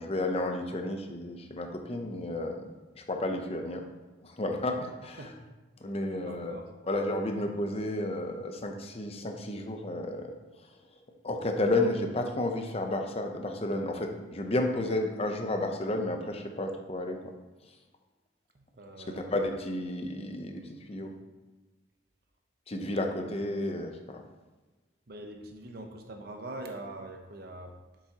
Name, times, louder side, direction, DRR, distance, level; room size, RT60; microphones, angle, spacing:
voice 1, 0.0-2.6 3.0-3.9 4.2-5.2 5.8-6.6 6.9-10.3 11.2-17.2 19.1-20.6 20.9-21.1 22.7-24.2, left 1 dB, 30° left, 4 dB, 0.7 m, -32 dB
voice 2, 4.9-5.3 5.8-5.9 6.3-6.7 18.5-19.3 25.1-27.7, right 2 dB, 55° right, 4 dB, 0.9 m, -43 dB
7.4 x 6.9 x 2.9 m, 1.2 s
head